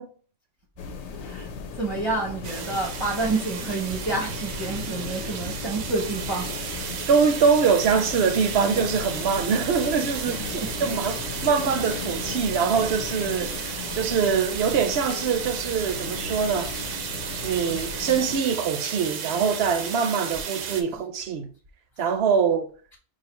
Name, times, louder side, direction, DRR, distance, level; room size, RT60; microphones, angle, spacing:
sound 1, 0.8-18.4, left 5 dB, 75° left, 0.9 m, -36 dB
voice 1, 1.2-1.5 1.7-6.5 10.2-10.7 11.1-11.2, right 3 dB, 30° right, 0.6 m, -29 dB
sound 2, 2.4-20.8, right 7 dB, 90° right, 1.0 m, -34 dB
voice 2, 7.1-10.3 10.8-16.8 17.4-21.5 22.0-22.7, right 6 dB, 65° right, 0.7 m, -23 dB
4.8 x 2.6 x 3.0 m
omnidirectional pair, 1.2 m